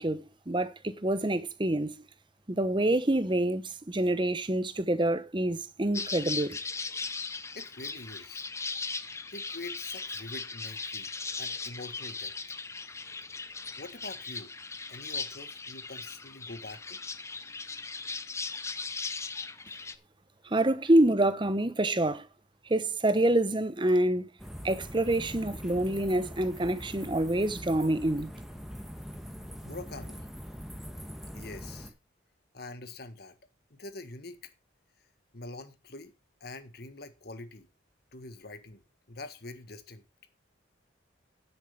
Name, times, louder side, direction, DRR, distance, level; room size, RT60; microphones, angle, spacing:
voice 1, 0.0-1.9 2.5-6.6 20.4-22.3 22.7-24.3 24.6-28.3, right 1 dB, 25° right, 0.9 m, -27 dB
sound 1, 5.9-20.0, left 4 dB, 15° left, 0.7 m, -38 dB
voice 2, 7.5-8.5 9.3-11.1 11.4-12.3 13.8-14.5 14.9-17.0 29.6-30.3 31.3-31.9 32.5-33.4 33.7-34.5 35.3-36.1 36.4-37.7 38.1-38.8 39.1-40.0, left 2 dB, 55° left, 1.6 m, -44 dB
sound 2, 24.4-31.9, equal, ahead, 1.4 m, -43 dB
10.0 x 7.7 x 5.2 m
head